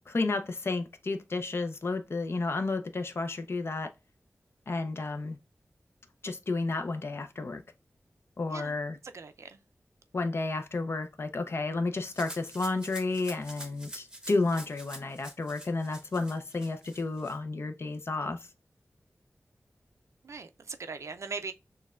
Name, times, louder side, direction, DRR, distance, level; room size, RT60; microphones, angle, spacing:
voice 1, 0.1-3.9 4.7-5.4 6.2-7.6 8.4-9.0 10.1-18.4, left 3 dB, 55° left, 0.5 m, -31 dB
voice 2, 9.0-9.6 20.2-21.5, right 4 dB, 75° right, 0.4 m, -40 dB
Rattle (instrument), 12.1-17.4, equal, 15° right, 0.8 m, -46 dB
6.3 x 2.2 x 2.3 m
wide cardioid pair, 80°, 5 cm